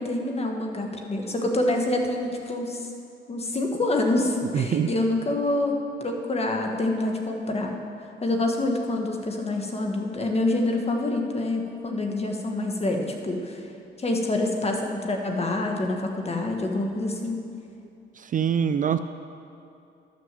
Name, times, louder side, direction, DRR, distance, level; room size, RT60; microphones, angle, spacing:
voice 1, 0.0-2.9 3.3-7.7 8.2-13.6 14.0-17.4, left 2 dB, 30° left, 2 dB, 1.5 m, -26 dB
voice 2, 4.5-4.9 18.2-19.0, right 8 dB, 40° right, 11 dB, 0.4 m, -24 dB
12.0 x 6.3 x 7.6 m, 2.6 s
cardioid pair, 90°, 20 cm